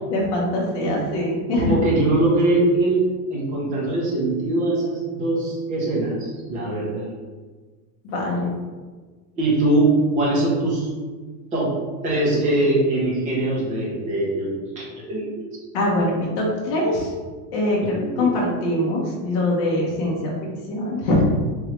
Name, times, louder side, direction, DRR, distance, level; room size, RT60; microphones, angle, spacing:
voice 1, 0.1-1.8 8.0-8.5 15.7-17.1 17.5-20.4 20.7-21.2, left 1 dB, 40° left, -3 dB, 0.8 m, -23 dB
voice 2, 1.6-3.0 3.3-7.0 9.4-10.9 11.5-11.8 12.0-15.5 17.8-18.3, right 2 dB, 15° right, -5 dB, 0.5 m, -22 dB
3.6 x 3.1 x 3.0 m, 1.4 s
supercardioid pair, 175°, 47 cm